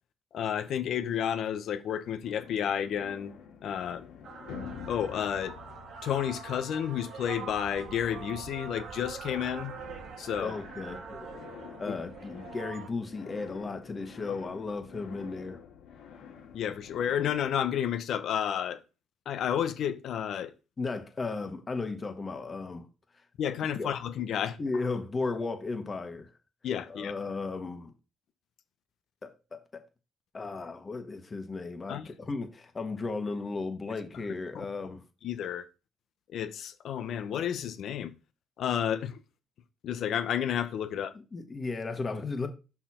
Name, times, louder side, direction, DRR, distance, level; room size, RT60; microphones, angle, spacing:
voice 1, 0.3-3.3 3.6-4.0 4.9-5.6 6.0-9.7 10.2-10.5 11.9-12.0 16.5-18.8 19.3-20.5 23.4-24.6 26.6-27.1 31.9-32.1 34.5-34.7 35.2-35.6 36.3-38.1 38.6-39.2 39.8-41.1, left 9 dB, 65° left, 0.9 m, -31 dB
sound 1, 2.2-9.2 9.5-17.8, left 7 dB, 85° left, 2.5 m, -48 dB
sound 2, 4.2-12.9, right 6 dB, 65° right, 1.3 m, -44 dB
voice 2, 10.4-11.3 11.8-15.6 20.8-22.9 23.8-23.9 24.6-26.3 26.9-27.9 29.2-29.8 30.3-35.0 41.1-42.5, left 3 dB, 35° left, 1.5 m, -35 dB
5.7 x 4.6 x 4.3 m
supercardioid pair, 75°, 0 cm